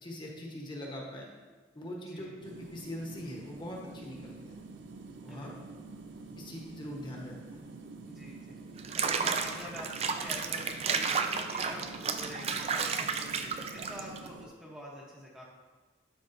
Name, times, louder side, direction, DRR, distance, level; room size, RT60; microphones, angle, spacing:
voice 1, 0.0-1.3 1.7-4.6 5.2-5.5 6.4-7.6, left 1 dB, 25° left, -2 dB, 1.1 m, -42 dB
voice 2, 1.9-2.4 5.2-5.7 8.0-8.6 8.9-15.4, left 1 dB, 5° right, -4 dB, 1.0 m, -47 dB
sound 1, 2.4-14.5, right 3 dB, 80° right, 0.6 m, -47 dB
Water / Bathtub (filling or washing), 8.8-14.3, right 5 dB, 35° right, 0.4 m, -32 dB
11.5 x 5.1 x 2.7 m, 1.3 s
head